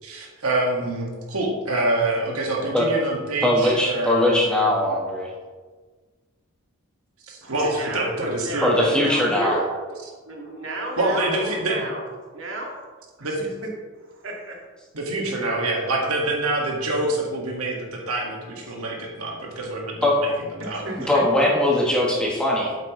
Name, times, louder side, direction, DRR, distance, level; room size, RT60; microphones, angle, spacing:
voice 1, 0.0-4.8 7.3-8.9 11.0-11.9 13.2-13.5 14.9-20.3 20.6-21.3, right 2 dB, 85° right, -1 dB, 1.8 m, -26 dB
voice 2, 3.4-5.3 8.6-9.6 20.0-20.2 21.1-22.8, left 1 dB, 5° left, -3 dB, 1.3 m, -20 dB
voice 3, 7.4-10.0 10.2-12.1 12.3-12.7 13.2-13.4 14.0-14.6 20.6-21.6, right 1 dB, 65° right, -1 dB, 1.9 m, -32 dB
8.8 x 7.7 x 3.1 m, 1.4 s
head